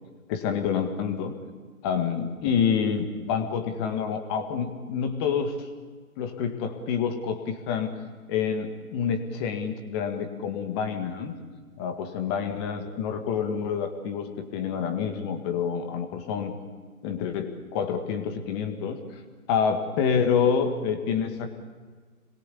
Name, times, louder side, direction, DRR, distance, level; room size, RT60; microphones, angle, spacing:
voice 1, 0.3-1.3 1.8-5.7 6.2-7.9 8.3-11.3 11.8-16.5 17.0-19.2 19.5-21.6, left 7 dB, 15° left, 7 dB, 1.7 m, -27 dB
26.5 x 21.5 x 8.4 m, 1.5 s
figure-of-eight pair, 145°, 44 cm